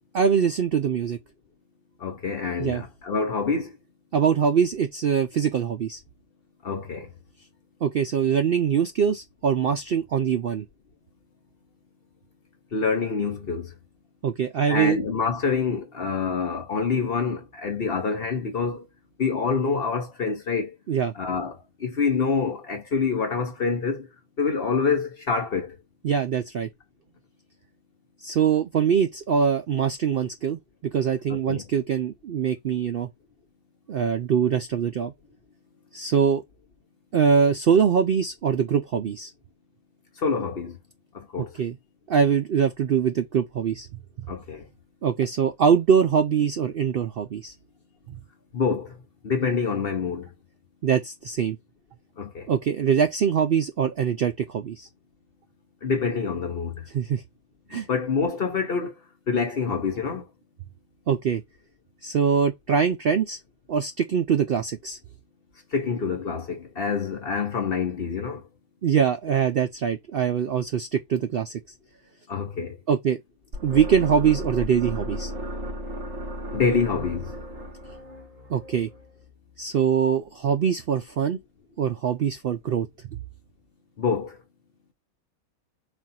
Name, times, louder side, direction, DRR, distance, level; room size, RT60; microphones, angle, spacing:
voice 1, 0.1-1.2 2.6-2.8 4.1-6.0 7.8-10.7 14.2-15.0 20.9-21.1 26.0-26.7 28.2-30.6 30.9-33.1 33.9-35.1 35.9-36.4 37.1-39.3 41.6-41.8 42.1-43.9 45.0-47.5 48.1-48.2 50.8-51.6 52.5-54.9 56.9-57.2 57.7-57.9 61.1-61.4 62.0-63.4 63.7-65.0 68.8-71.6 72.9-73.2 73.6-75.3 78.5-78.9 79.6-81.4 81.8-82.9, right 7 dB, 75° right, 0.5 m, -23 dB
voice 2, 2.0-3.8 6.6-7.1 12.7-13.7 14.7-18.9 19.2-20.7 21.1-24.1 24.4-25.7 31.5-31.6 40.2-40.8 41.1-41.6 44.3-44.7 48.5-49.0 49.2-50.3 52.2-52.5 55.8-56.9 57.7-58.9 59.3-60.2 65.7-68.4 72.3-72.8 76.5-77.3 84.0-84.4, left 5 dB, 45° left, 0.9 m, -26 dB
sound 1, 73.5-79.6, equal, 50° right, 1.9 m, -35 dB
4.2 x 2.5 x 4.1 m
omnidirectional pair, 1.5 m